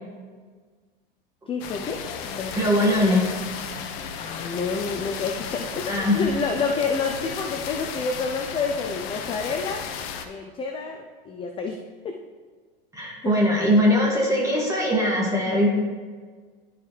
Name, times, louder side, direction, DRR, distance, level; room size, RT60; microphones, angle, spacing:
voice 1, 1.5-2.6 4.2-9.9 10.2-11.8 12.0-12.2 13.2-13.4, left 4 dB, 20° left, 3 dB, 0.5 m, -29 dB
sound 1, 1.6-10.3, left 7 dB, 45° left, 0.8 m, -34 dB
voice 2, 2.5-3.3 5.9-6.2 12.9-15.7, left 1 dB, 10° right, -3 dB, 2.1 m, -21 dB
11.5 x 4.7 x 3.3 m, 1.5 s
hypercardioid pair, 110°, 29 cm